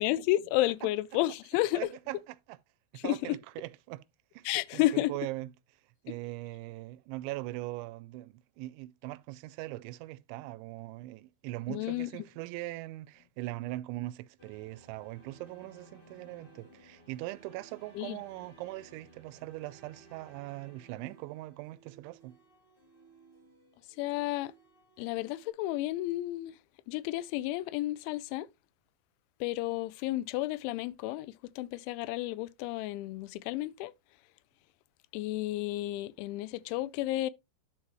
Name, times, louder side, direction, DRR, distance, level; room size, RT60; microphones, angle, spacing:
voice 1, 0.0-1.9 3.0-3.4 4.5-5.1 11.7-12.1 18.0-18.2 24.0-24.5 25.0-26.6 26.9-28.5 29.4-33.9 35.1-37.3, left 16 dB, 90° left, 2.9 m, -31 dB
voice 2, 1.7-2.6 3.0-4.0 4.3-4.5 4.7-5.5 6.0-22.4, right 18 dB, 85° right, 2.9 m, -41 dB
sound 1, 14.4-25.5, right 2 dB, 60° left, 0.5 m, -58 dB
11.5 x 4.7 x 3.0 m
omnidirectional pair, 5.3 m